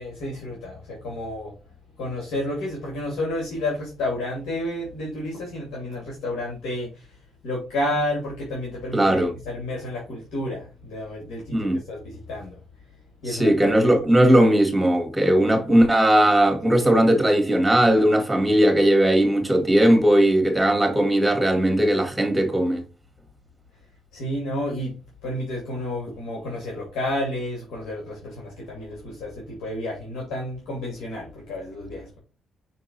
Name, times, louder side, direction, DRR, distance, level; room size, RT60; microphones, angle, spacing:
voice 1, 0.0-1.5 2.0-7.1 7.4-12.6 13.2-14.0 24.1-24.9 25.2-32.2, left 1 dB, 85° left, 2.4 m, -31 dB
voice 2, 8.9-9.3 11.5-11.8 13.3-22.8, right 1 dB, 5° right, 2.0 m, -18 dB
6.1 x 3.6 x 4.3 m
cardioid pair, 90°, 0 cm